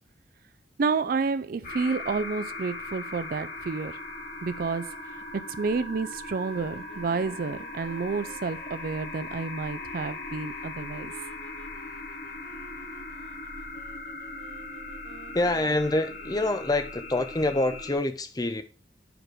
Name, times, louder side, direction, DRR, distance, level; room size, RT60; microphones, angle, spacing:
voice 1, 0.8-4.0 4.4-4.9 5.3-11.1, right 4 dB, 55° right, 0.4 m, -30 dB
sound 1, 1.6-17.9, left 2 dB, 50° left, 1.8 m, -39 dB
sound 2, 6.4-16.7, right 2 dB, 90° right, 2.2 m, -52 dB
voice 2, 15.3-18.6, left 2 dB, 20° left, 0.6 m, -26 dB
5.0 x 5.0 x 6.1 m
head